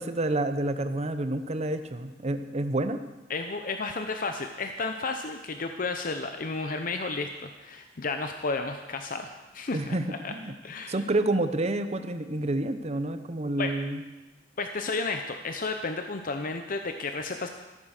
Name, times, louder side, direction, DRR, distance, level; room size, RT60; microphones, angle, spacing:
voice 1, 0.0-3.0 9.7-10.5 10.9-14.0, right 2 dB, 35° right, 10 dB, 0.8 m, -29 dB
voice 2, 3.3-10.0 10.2-10.3 10.6-11.0 13.6-13.7 14.6-17.5, left 3 dB, 50° left, 6 dB, 0.7 m, -32 dB
14.0 x 9.3 x 6.5 m, 1.1 s
head